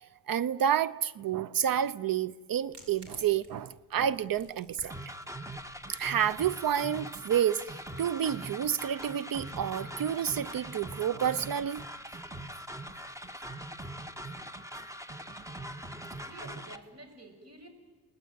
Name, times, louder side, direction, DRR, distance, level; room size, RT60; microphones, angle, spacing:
voice 1, 0.0-5.1 5.9-11.8, right 9 dB, 55° right, 0.7 m, -30 dB
sound 1, 2.6-13.3, right 3 dB, 70° right, 6.7 m, -58 dB
sound 2, 4.9-16.8, right 1 dB, 5° right, 1.6 m, -42 dB
voice 2, 16.2-17.7, right 2 dB, 35° right, 7.0 m, -49 dB
29.5 x 19.5 x 9.4 m
cardioid pair, 75°, 42 cm